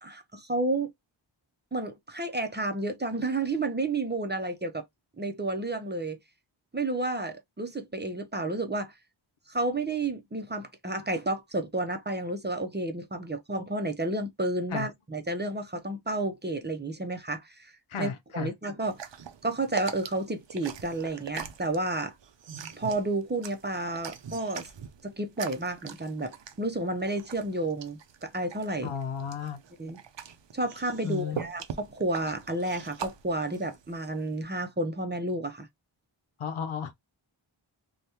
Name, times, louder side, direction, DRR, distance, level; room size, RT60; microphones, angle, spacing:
voice 1, 0.0-0.9 1.7-4.8 5.2-6.2 6.7-8.9 9.5-17.7 18.0-19.0 19.4-22.1 22.7-24.7 25.0-28.9 29.8-30.0 30.5-35.7, right 2 dB, 20° right, 0.6 m, -31 dB
voice 2, 17.9-18.5 28.8-29.6 31.0-31.5 36.4-36.9, left 7 dB, 85° left, 0.7 m, -33 dB
sound 1, 18.8-34.4, right 8 dB, 65° right, 0.6 m, -42 dB
3.4 x 2.3 x 2.7 m
wide cardioid pair, 60°, 48 cm